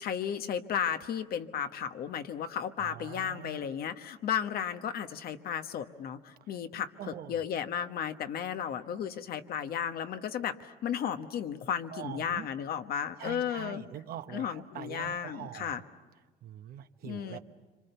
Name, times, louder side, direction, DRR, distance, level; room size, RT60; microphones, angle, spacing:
voice 1, 0.0-13.8 14.3-15.8 17.0-17.4, left 8 dB, 65° left, 8 dB, 1.3 m, -34 dB
voice 2, 2.8-3.6 7.0-7.4 11.9-12.5 13.2-15.7 16.4-17.4, right 11 dB, 65° right, 9 dB, 1.1 m, -43 dB
26.5 x 25.5 x 6.9 m, 1.3 s
cardioid pair, 110°, 17 cm